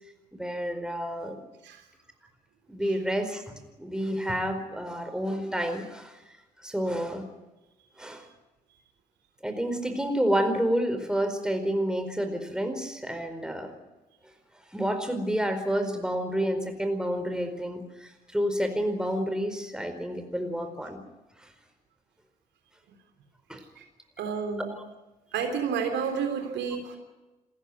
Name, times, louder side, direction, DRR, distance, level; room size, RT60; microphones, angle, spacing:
voice 1, 0.3-1.4 2.7-6.2 6.6-7.3 8.0-8.3 9.4-13.8 14.7-21.0 21.4-21.5 23.5-23.6 24.7-24.8, equal, 5° right, 7 dB, 4.6 m, -29 dB
voice 2, 24.2-24.7 25.3-27.0, right 6 dB, 60° right, 5 dB, 3.5 m, -30 dB
27.5 x 15.0 x 9.4 m, 1.1 s
figure-of-eight pair, 40°, 20 cm